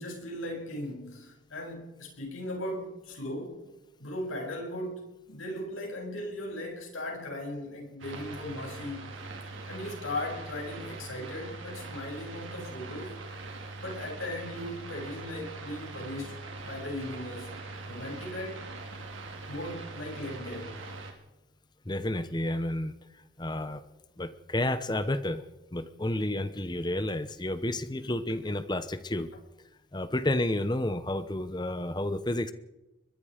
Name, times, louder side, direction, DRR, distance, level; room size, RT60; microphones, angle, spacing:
voice 1, 0.0-3.6 4.0-9.1 9.7-13.1 13.8-16.4 16.7-17.6 17.9-18.9 19.5-20.7, left 1 dB, 90° left, 1 dB, 7.4 m, -38 dB
sound 1, 8.0-21.1, right 3 dB, 80° right, 4.0 m, -42 dB
voice 2, 21.9-23.0 23.4-23.8 24.2-25.4 25.7-29.3 29.9-32.5, left 1 dB, 20° left, 12 dB, 0.9 m, -30 dB
24.5 x 21.5 x 5.1 m, 0.99 s
head